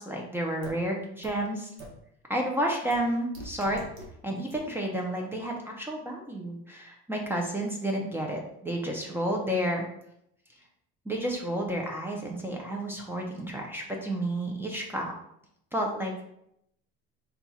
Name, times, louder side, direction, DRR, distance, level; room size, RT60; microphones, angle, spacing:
voice 1, 0.0-1.7 2.3-3.8 4.2-9.8 11.1-15.1 15.7-16.1, right 1 dB, 5° right, 0 dB, 0.5 m, -31 dB
sound 1, 0.6-0.7 1.2-1.3 1.8-1.9 2.9-3.0 3.3-4.1 4.5-4.6, right 3 dB, 60° right, 1.2 m, -43 dB
4.1 x 2.4 x 4.1 m, 0.75 s
cardioid pair, 145°, 32 cm